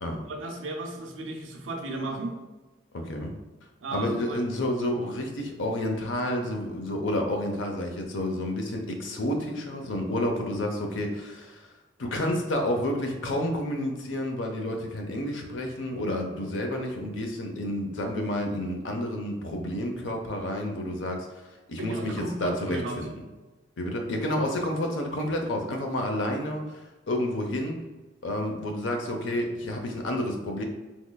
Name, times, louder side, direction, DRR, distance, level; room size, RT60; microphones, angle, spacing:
voice 1, 0.3-2.3 3.8-4.4 21.8-23.0, right 2 dB, 85° right, 2 dB, 0.6 m, -34 dB
voice 2, 2.9-3.3 3.9-11.7 12.0-21.3 21.7-23.1 23.8-26.8 27.1-27.8 28.2-30.6, left 1 dB, 75° left, 3 dB, 0.6 m, -30 dB
3.7 x 3.0 x 2.3 m, 1.2 s
head